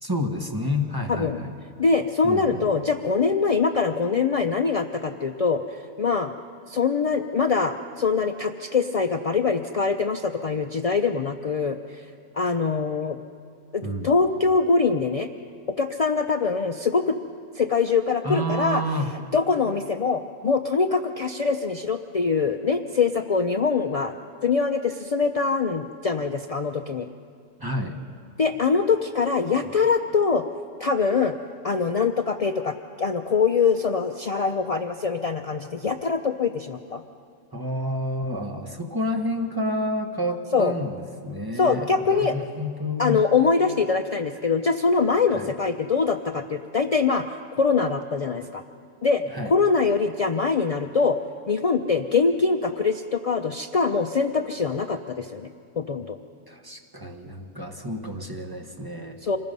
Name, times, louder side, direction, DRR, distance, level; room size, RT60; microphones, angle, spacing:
voice 1, 0.0-1.5 2.2-2.7 13.8-14.1 18.2-19.1 27.6-28.0 29.6-29.7 37.5-43.2 45.3-45.5 49.3-49.5 56.5-59.2, left 1 dB, 15° right, 3 dB, 1.3 m, -29 dB
voice 2, 1.1-1.4 1.8-6.3 6.7-12.1 12.3-13.2 13.7-15.3 15.8-17.2 17.5-18.8 19.3-24.1 24.4-27.1 28.4-30.4 30.8-31.3 31.6-37.0 40.5-40.7 41.6-42.4 43.0-47.3 47.6-48.6 49.0-51.2 51.5-55.5 55.8-56.2 59.2-59.4, left 4 dB, 55° left, 6 dB, 0.4 m, -23 dB
26.0 x 20.0 x 5.4 m, 2.3 s
omnidirectional pair, 1.5 m